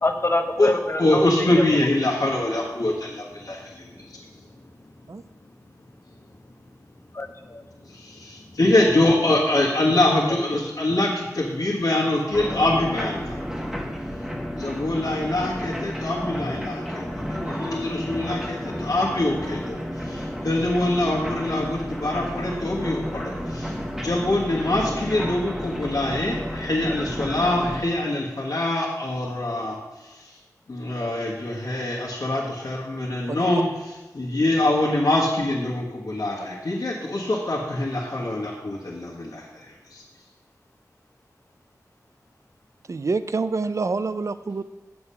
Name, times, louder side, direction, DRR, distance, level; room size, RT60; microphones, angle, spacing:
voice 1, 0.0-1.6 7.1-7.6 10.3-10.4, left 2 dB, 40° left, 5 dB, 0.9 m, -26 dB
voice 2, 1.0-3.8 8.0-13.2 14.5-19.8 20.0-29.8 30.7-33.7 34.1-39.4, left 1 dB, 70° left, -4 dB, 1.4 m, -24 dB
sound 1, 12.3-27.8, equal, 5° right, 1.2 m, -32 dB
voice 3, 42.9-44.6, right 4 dB, 55° right, 13 dB, 0.4 m, -26 dB
8.4 x 6.9 x 5.6 m, 1.1 s
wide cardioid pair, 75°, 6 cm